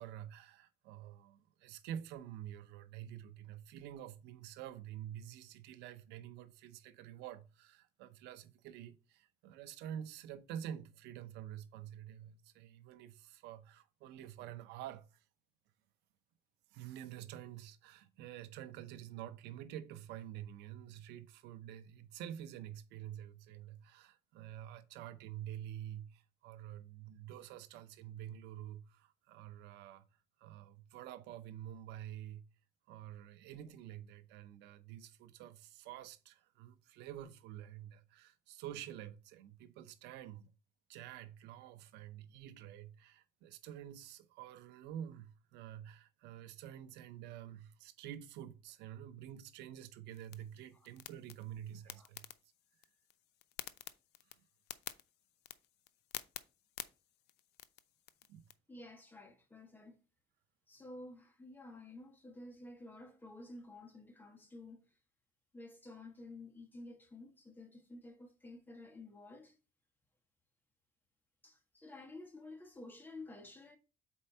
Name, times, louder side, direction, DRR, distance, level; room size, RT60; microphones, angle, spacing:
voice 1, 0.0-15.2 16.7-30.1 30.4-32.4 32.9-40.5 40.9-52.3 58.3-58.4, right 11 dB, 90° right, 0.6 m, -48 dB
sound 1, 50.1-58.5, left 14 dB, 75° left, 0.5 m, -51 dB
voice 2, 58.7-60.0 60.7-65.0 65.5-69.6 71.4-73.8, left 2 dB, 10° left, 1.5 m, -52 dB
4.5 x 4.2 x 5.4 m
cardioid pair, 110°, 17 cm